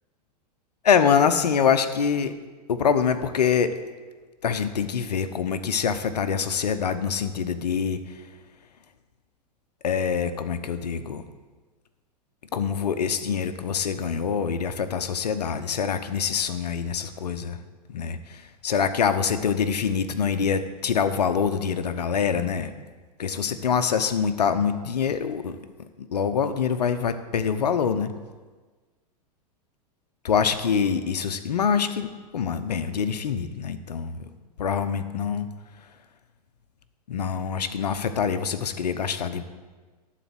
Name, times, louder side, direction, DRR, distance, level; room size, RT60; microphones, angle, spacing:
voice 1, 0.8-2.3 2.7-3.8 4.4-8.2 9.8-11.2 12.5-17.6 17.9-22.7 23.2-25.6 26.0-28.1 30.2-34.3 34.6-35.5 37.1-39.4, left 7 dB, 75° left, 11 dB, 0.8 m, -25 dB
12.0 x 4.2 x 7.9 m, 1.4 s
figure-of-eight pair, 100°, 21 cm